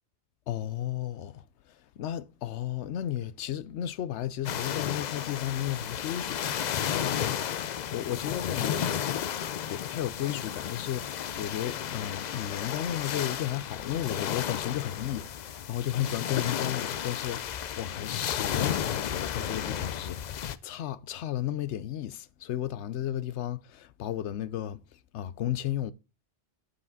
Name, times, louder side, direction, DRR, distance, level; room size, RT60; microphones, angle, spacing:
voice 1, 0.5-6.5 6.9-7.4 7.9-24.8 25.1-25.9, left 11 dB, 80° left, 0.9 m, -34 dB
sound 1, 4.4-20.6, left 9 dB, 60° left, 0.5 m, -33 dB
9.6 x 4.9 x 4.0 m
omnidirectional pair, 1.2 m